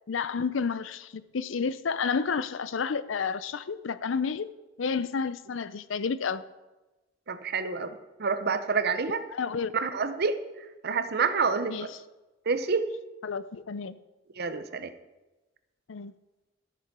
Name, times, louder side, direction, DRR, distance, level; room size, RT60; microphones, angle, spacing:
voice 1, 0.1-4.5 4.8-6.5 9.3-9.7 11.7-11.9 13.2-14.0 15.9-16.1, left 5 dB, 75° left, 15 dB, 0.5 m, -30 dB
voice 2, 7.3-9.2 9.7-10.4 10.8-11.7 12.5-12.9 14.4-14.9, right 5 dB, 55° right, 11 dB, 0.8 m, -28 dB
13.5 x 6.9 x 6.1 m, 1.1 s
head